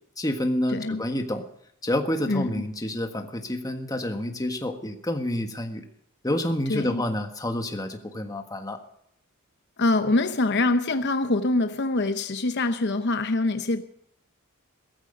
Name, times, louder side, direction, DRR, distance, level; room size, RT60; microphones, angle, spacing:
voice 1, 0.2-1.5 1.8-5.8 6.2-8.8, left 1 dB, 15° left, 1.5 m, -28 dB
voice 2, 0.7-1.1 2.3-2.6 6.7-7.0 9.8-13.8, left 2 dB, 55° left, 0.8 m, -24 dB
16.5 x 14.5 x 5.2 m
head